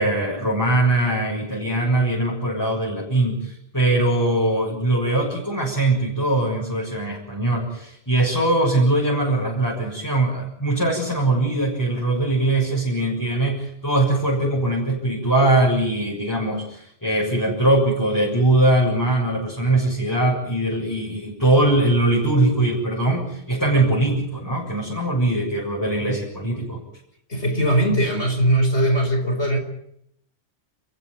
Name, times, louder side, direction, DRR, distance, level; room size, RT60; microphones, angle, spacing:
voice 1, 0.0-26.8, right 2 dB, 15° left, 7.0 m, -21 dB
voice 2, 27.3-29.6, right 1 dB, 75° left, 4.9 m, -20 dB
30.0 x 15.5 x 9.5 m
omnidirectional pair, 1.1 m